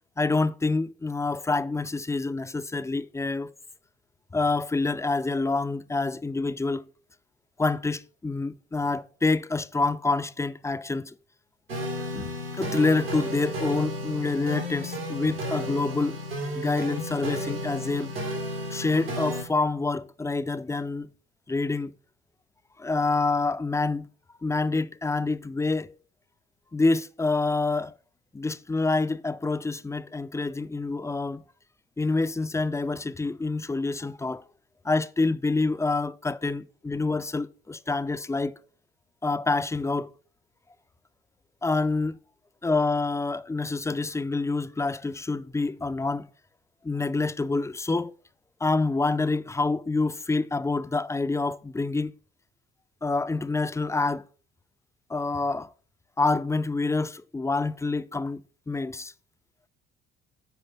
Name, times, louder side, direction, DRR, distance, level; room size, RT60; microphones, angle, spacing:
voice 1, 0.2-3.5 4.3-6.8 7.6-11.1 12.1-12.3 12.6-16.2 16.5-18.1 18.7-21.1 21.5-21.9 22.8-24.1 24.4-25.9 26.7-27.9 28.3-31.4 32.0-34.4 34.8-38.6 39.2-40.1 41.6-42.2 42.6-46.3 46.8-48.1 48.6-52.1 53.0-54.2 55.1-55.7 56.2-58.4 58.7-59.1, left 3 dB, 10° left, 0.5 m, -27 dB
sound 1, 11.7-19.4, equal, 90° right, 2.7 m, -33 dB
9.2 x 5.1 x 5.7 m
figure-of-eight pair, 50°, 29 cm